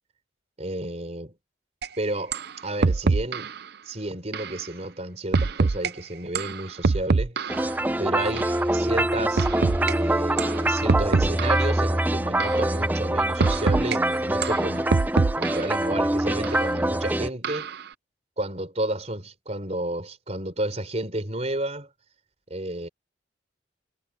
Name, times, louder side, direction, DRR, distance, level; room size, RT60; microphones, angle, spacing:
voice 1, 0.6-1.3 2.0-3.5 3.9-7.5 8.0-9.5 9.8-15.0 15.3-17.7 18.4-21.9 22.5-22.9, right 1 dB, 35° right, 3.9 m, -31 dB
sound 1, 1.8-1.9 2.3-2.5 2.8-3.6 4.3-4.6 5.3-5.9 6.3-7.7 8.4-8.6 9.4-9.9 10.4-10.6 10.9-11.7 12.4-12.7 13.4-14.0 14.4-15.7 16.4-16.6 17.4-17.8, right 4 dB, 55° right, 0.6 m, -24 dB
sound 2, 7.5-17.3, right 1 dB, 10° right, 0.6 m, -25 dB
head